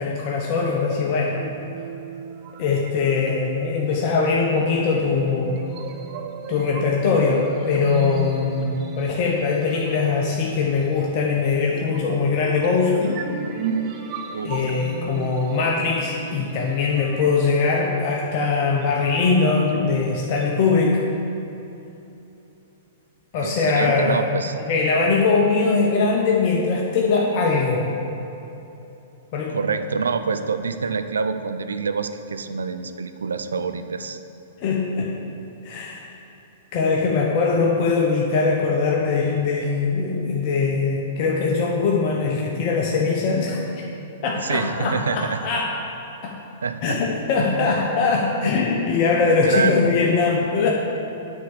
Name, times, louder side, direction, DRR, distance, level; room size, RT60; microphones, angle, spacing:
voice 1, 0.0-1.4 2.6-5.6 6.5-13.2 14.4-21.0 23.3-24.2 24.6-27.9 29.3-29.6 34.6-35.1 35.6-36.1 36.7-43.6 44.2-45.7 46.2-46.3 46.8-50.7, left 4 dB, 45° left, -2 dB, 0.9 m, -21 dB
sound 1, 1.1-21.1, right 6 dB, 40° right, 0.7 m, -36 dB
voice 2, 14.3-14.6 23.3-24.5 29.5-34.2 44.4-45.4 46.6-47.0 47.4-47.7 49.4-49.9, right 5 dB, 75° right, 9 dB, 0.4 m, -26 dB
8.5 x 4.7 x 6.6 m, 2.9 s
figure-of-eight pair, 110°, 0 cm